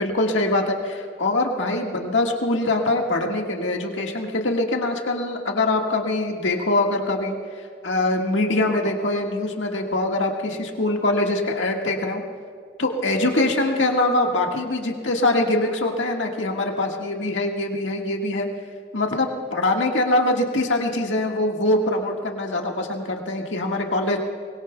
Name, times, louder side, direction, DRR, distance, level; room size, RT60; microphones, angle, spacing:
voice 1, 0.0-7.4 7.8-12.2 12.8-18.5 18.9-24.2, left 2 dB, 85° left, 1 dB, 1.7 m, -23 dB
23.5 x 21.0 x 2.3 m, 2.1 s
head